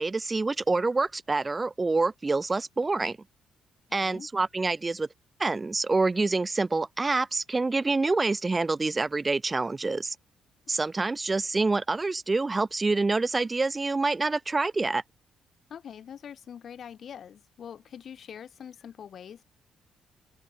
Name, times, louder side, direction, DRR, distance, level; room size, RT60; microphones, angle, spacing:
voice 1, 0.0-3.2 3.9-5.1 5.4-10.1 10.7-15.0, right 3 dB, 25° right, 1.2 m, -27 dB
voice 2, 3.9-4.3 15.7-19.4, left 8 dB, 60° left, 4.4 m, -44 dB
open air
cardioid pair, 90°, 0 cm